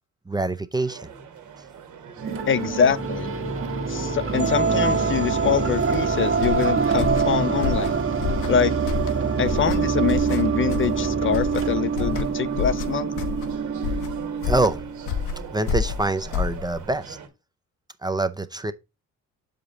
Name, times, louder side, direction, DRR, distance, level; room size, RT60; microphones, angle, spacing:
voice 1, 0.3-1.1 14.4-14.8 15.5-17.2 18.0-18.7, right 2 dB, 15° right, 0.5 m, -25 dB
sound 1, 0.8-17.3, right 7 dB, 80° right, 1.6 m, -43 dB
sound 2, 2.2-15.1, right 5 dB, 45° right, 1.5 m, -25 dB
voice 2, 2.5-3.3 3.9-8.0 8.5-8.7 9.4-13.1, left 7 dB, 40° left, 0.5 m, -24 dB
sound 3, 6.3-17.0, left 7 dB, 85° left, 1.1 m, -30 dB
6.9 x 5.1 x 3.9 m
cardioid pair, 90°, 30 cm